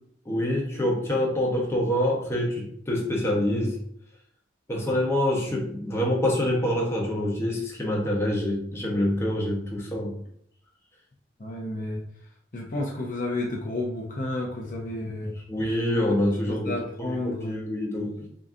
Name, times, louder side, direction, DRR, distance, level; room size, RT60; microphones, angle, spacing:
voice 1, 0.3-3.8 4.7-10.2 15.5-16.7 17.0-18.4, left 1 dB, 15° left, -2 dB, 0.9 m, -26 dB
voice 2, 11.4-12.0 12.5-15.3 15.9-16.0 16.5-17.6, left 2 dB, 45° left, -1 dB, 0.6 m, -31 dB
3.7 x 3.7 x 2.6 m, 0.66 s
head